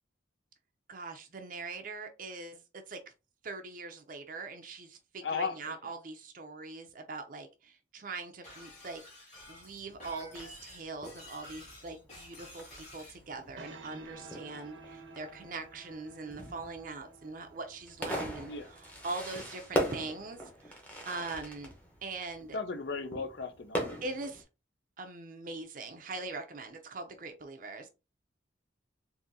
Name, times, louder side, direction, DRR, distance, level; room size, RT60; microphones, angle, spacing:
voice 1, 0.9-3.0 3.4-9.0 9.5-21.7 22.0-22.6 24.0-24.4 25.0-27.9, right 3 dB, 45° right, 0.5 m, -42 dB
voice 2, 5.2-5.7 18.5-18.7 22.5-24.0, left 4 dB, 60° left, 0.5 m, -36 dB
Shatter, 8.4-13.2, left 1 dB, 35° left, 2.0 m, -51 dB
Fireworks, 9.4-24.4, right 1 dB, 10° left, 0.8 m, -41 dB
sound 1, 13.3-20.4, right 3 dB, 80° right, 0.8 m, -53 dB
3.8 x 2.7 x 2.7 m
head